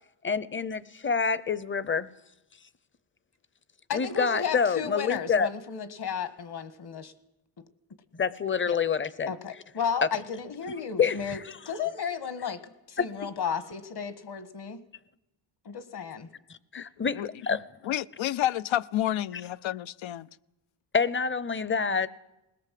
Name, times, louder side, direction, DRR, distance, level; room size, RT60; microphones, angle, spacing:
voice 1, 0.2-2.1 3.9-5.5 8.1-9.3 11.0-11.6 13.0-13.1 16.7-17.6 20.9-22.1, left 5 dB, 25° left, 0.7 m, -27 dB
voice 2, 3.9-7.1 8.7-8.8 9.3-11.4 11.7-14.8 15.9-16.3, left 7 dB, 55° left, 1.7 m, -33 dB
voice 3, 17.8-20.3, left 12 dB, 75° left, 0.7 m, -29 dB
20.5 x 17.5 x 7.6 m
cardioid pair, 105°, 47 cm